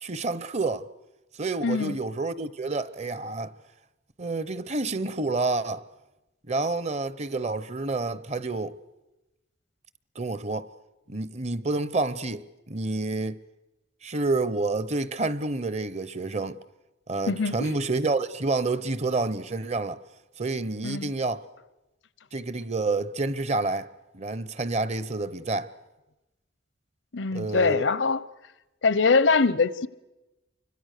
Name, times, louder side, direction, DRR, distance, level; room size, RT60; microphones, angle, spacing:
voice 1, 0.0-0.9 1.4-3.5 4.2-5.8 6.5-8.7 10.2-10.7 11.1-13.4 14.0-16.6 17.1-20.0 20.4-21.4 22.3-23.9 24.1-25.7 27.3-27.8, right 3 dB, 35° right, 0.8 m, -29 dB
voice 2, 1.6-2.0 17.3-17.8 20.8-21.1 27.1-28.2 28.8-29.9, left 4 dB, 90° left, 0.9 m, -23 dB
29.0 x 24.5 x 6.7 m
head